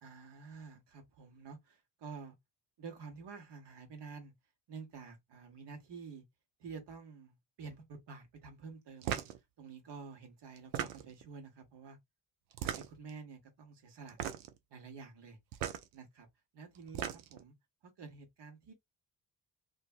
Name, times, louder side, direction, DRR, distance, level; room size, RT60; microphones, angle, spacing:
voice 1, 0.0-2.3 2.8-4.3 4.7-6.2 6.6-9.2 9.6-12.0 12.6-14.2 14.7-15.4 15.9-16.3 16.5-17.5 17.8-18.7, right 5 dB, 55° right, 1.2 m, -49 dB
sound 1, 9.0-9.4 10.6-11.3 12.5-13.1 14.1-14.6 15.5-15.8 16.7-17.4, right 10 dB, 80° right, 0.6 m, -37 dB
2.5 x 2.4 x 2.5 m
hypercardioid pair, 45°, 50 cm